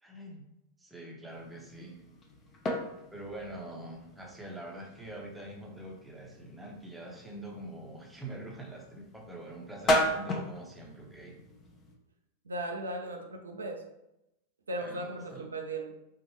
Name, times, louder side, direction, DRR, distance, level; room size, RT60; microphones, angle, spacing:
voice 1, 0.0-0.5 0.8-2.0 3.1-11.4 14.8-15.5, right 1 dB, 5° right, -1 dB, 0.8 m, -44 dB
sound 1, 1.3-12.0, left 1 dB, 25° left, 0.6 m, -36 dB
voice 2, 12.5-13.8 14.7-15.9, right 1 dB, 75° right, 2 dB, 0.5 m, -37 dB
4.4 x 2.5 x 3.1 m, 0.87 s
figure-of-eight pair, 90°, 0 cm